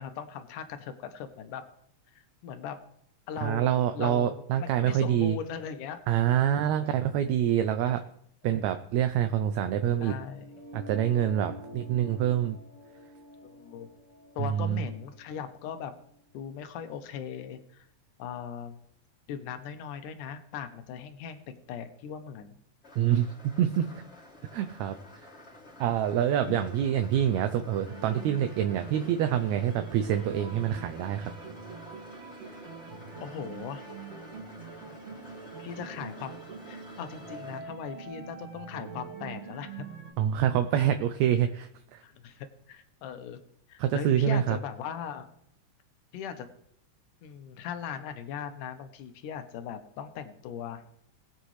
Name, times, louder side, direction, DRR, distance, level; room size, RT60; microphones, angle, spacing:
voice 1, 0.0-1.6 2.1-2.8 3.3-6.0 6.4-6.9 8.4-8.5 10.0-10.5 11.7-11.8 13.4-13.9 14.4-15.9 16.3-17.9 18.2-18.8 19.3-21.4 21.7-22.6 25.8-25.9 26.5-26.6 33.2-33.8 35.6-36.4 36.7-39.9 42.0-43.4 43.7-45.3 46.1-46.5 47.2-50.8, left 8 dB, 85° left, 8 dB, 2.5 m, -39 dB
voice 2, 3.4-5.4 6.1-8.0 8.4-10.1 10.7-12.6 14.4-14.8 23.0-24.0 24.5-25.0 25.8-31.3 40.2-42.0 43.8-44.6, right 10 dB, 75° right, 8 dB, 1.8 m, -26 dB
sound 1, 10.3-16.3, left 1 dB, 25° right, 1.0 m, -49 dB
sound 2, 22.8-37.6, left 2 dB, 20° left, 2.9 m, -50 dB
sound 3, 27.9-40.1, right 5 dB, 55° right, 3.0 m, -44 dB
20.5 x 8.0 x 3.2 m, 0.69 s
omnidirectional pair, 3.6 m